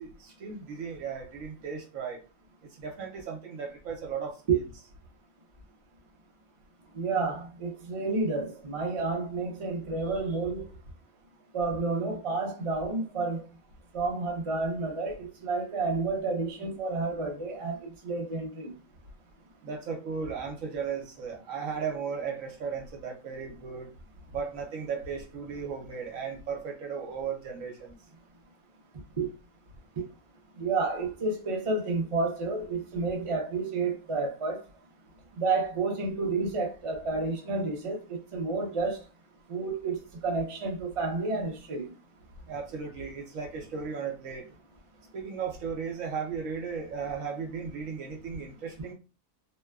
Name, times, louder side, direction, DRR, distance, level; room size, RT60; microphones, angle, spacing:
voice 1, 0.0-2.2 2.8-4.6 19.6-23.9 24.3-28.0 42.5-44.5 45.1-48.9, right 6 dB, 70° right, 1.1 m, -36 dB
voice 2, 6.9-10.7 11.5-13.4 13.9-18.7 29.2-29.3 30.0-30.1 30.6-34.6 35.3-39.0 39.5-40.0 40.2-41.9, right 3 dB, 45° right, 0.4 m, -30 dB
2.8 x 2.2 x 2.3 m
omnidirectional pair, 1.5 m